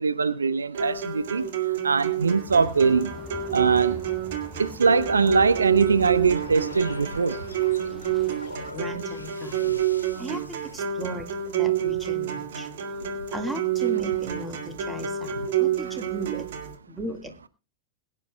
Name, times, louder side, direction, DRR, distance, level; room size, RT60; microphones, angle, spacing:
voice 1, 0.0-1.4 1.8-3.1 3.5-4.0 4.6-7.4 14.0-14.1 15.8-16.0, right 5 dB, 75° right, 0.6 m, -22 dB
sound 1, 0.7-16.7, right 9 dB, 55° right, 1.9 m, -28 dB
sound 2, 2.5-8.7, left 1 dB, 10° left, 0.9 m, -44 dB
sound 3, 5.8-10.8, left 2 dB, 80° left, 1.4 m, -42 dB
voice 2, 8.7-9.8 10.2-11.3 11.6-12.7 13.3-16.5 17.0-17.5, right 1 dB, 5° right, 1.9 m, -36 dB
22.0 x 9.8 x 2.3 m
figure-of-eight pair, 90°, 0 cm